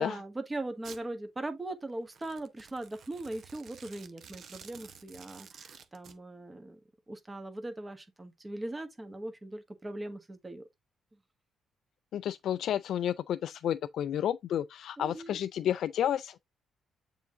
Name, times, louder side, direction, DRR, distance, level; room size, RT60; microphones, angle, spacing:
voice 1, 0.0-6.8 7.1-10.7 15.0-15.4, right 2 dB, 25° right, 1.3 m, -40 dB
Domestic sounds home sounds, 0.8-1.0 2.1-6.2, right 7 dB, 65° right, 0.8 m, -51 dB
voice 2, 12.1-16.4, left 10 dB, 70° left, 0.3 m, -31 dB
7.1 x 3.7 x 3.7 m
supercardioid pair, 60°, 0 cm